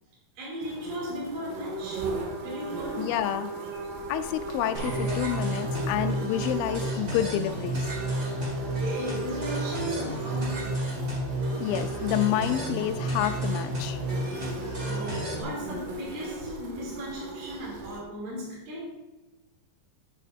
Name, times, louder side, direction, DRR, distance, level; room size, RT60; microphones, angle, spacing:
voice 1, 0.4-2.1 2.4-3.1 8.6-10.7 14.1-14.5 14.8-18.9, right 1 dB, 65° right, -6 dB, 4.6 m, -36 dB
sound 1, 0.6-18.0, right 2 dB, 90° right, 3.5 m, -38 dB
voice 2, 3.0-3.5 4.1-7.9 11.6-14.0, left 11 dB, 80° left, 9 dB, 2.2 m, -29 dB
sound 2, 4.7-15.4, right 1 dB, 35° right, 1.6 m, -31 dB
10.5 x 8.4 x 2.7 m, 1.0 s
omnidirectional pair, 4.5 m